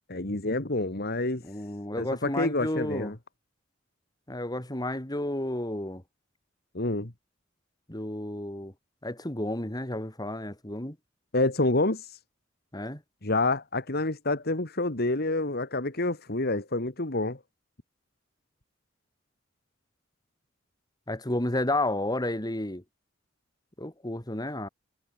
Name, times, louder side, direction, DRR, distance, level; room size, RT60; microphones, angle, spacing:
voice 1, 0.1-1.4 2.0-3.1 6.7-7.1 11.3-12.1 13.2-17.4, left 2 dB, 55° left, 2.4 m, -28 dB
voice 2, 1.4-3.1 4.3-6.0 7.9-8.7 9.0-11.0 12.7-13.0 21.1-22.8 23.8-24.7, left 1 dB, 20° left, 3.6 m, -31 dB
head